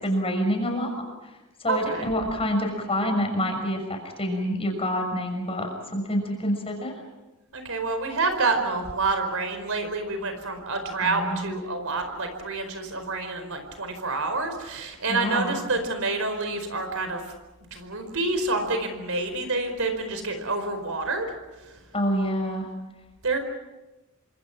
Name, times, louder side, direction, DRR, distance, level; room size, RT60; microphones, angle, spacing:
voice 1, 0.0-1.0 1.6-6.9 11.0-11.5 15.1-15.5 21.9-22.7, equal, 25° left, 3 dB, 6.4 m, -27 dB
voice 2, 1.7-2.1 7.5-17.2 17.7-21.3 23.2-23.4, right 3 dB, 70° right, 7 dB, 4.7 m, -28 dB
27.5 x 25.5 x 6.0 m, 1.1 s
head